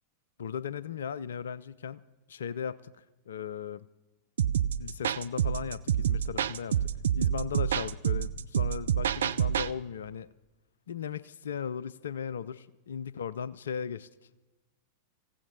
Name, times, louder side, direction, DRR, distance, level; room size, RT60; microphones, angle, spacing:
voice 1, 0.4-2.0 2.3-3.9 4.8-10.3 10.9-14.1, left 7 dB, 65° left, 20 dB, 0.4 m, -37 dB
sound 1, 4.4-9.7, right 9 dB, 65° right, 0.4 m, -28 dB
26.5 x 15.5 x 2.8 m, 1.1 s
figure-of-eight pair, 90°, 0 cm